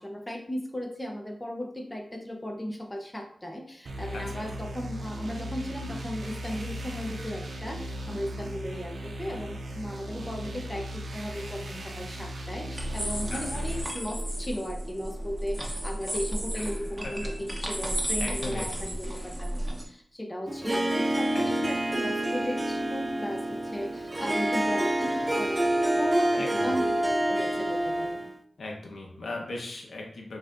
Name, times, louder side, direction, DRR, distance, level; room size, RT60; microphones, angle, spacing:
voice 1, 0.0-26.9 27.3-28.3, equal, 15° left, 2 dB, 0.6 m, -36 dB
sound 1, 3.9-13.8, equal, 75° right, 0.6 m, -37 dB
voice 2, 4.1-4.7 13.3-13.9 16.5-17.7 18.2-18.9 21.3-21.7 26.4-26.8 28.6-30.4, left 2 dB, 80° left, 0 dB, 0.9 m, -39 dB
sound 2, 12.7-19.8, right 1 dB, 10° right, 0.8 m, -33 dB
Harp, 20.5-28.4, right 1 dB, 25° right, 0.3 m, -27 dB
5.5 x 2.7 x 2.5 m, 0.65 s
wide cardioid pair, 95°, 0 cm